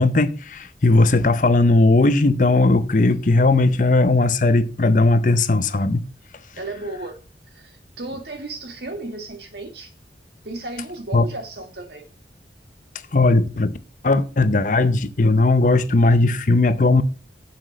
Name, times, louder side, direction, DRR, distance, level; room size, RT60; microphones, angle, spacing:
voice 1, 0.0-6.0 11.1-11.3 13.1-13.8 14.0-17.0, left 2 dB, 45° left, 0.7 m, -17 dB
voice 2, 6.6-7.1 7.5-9.9 10.4-12.1, right 2 dB, 65° right, 2.1 m, -34 dB
7.5 x 6.0 x 4.9 m
head